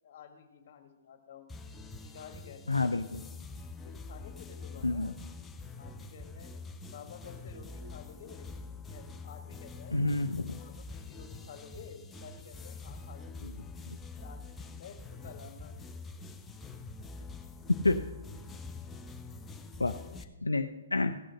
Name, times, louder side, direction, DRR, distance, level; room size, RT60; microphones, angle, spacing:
voice 1, 0.0-1.5 2.0-2.9 3.8-5.2 5.8-6.5 6.9-8.5 8.9-10.0 10.6-13.5 14.1-15.7 19.4-20.2, left 6 dB, 50° left, 6 dB, 1.9 m, -51 dB
sound 1, 1.5-20.2, left 3 dB, 10° left, 0.7 m, -45 dB
voice 2, 2.7-3.2 4.8-5.1 9.9-10.5 13.4-13.5 17.8-18.0 19.8-19.9 20.4-21.1, left 3 dB, 85° left, 7 dB, 0.5 m, -29 dB
15.5 x 6.3 x 6.4 m, 1.1 s
figure-of-eight pair, 130°, 0 cm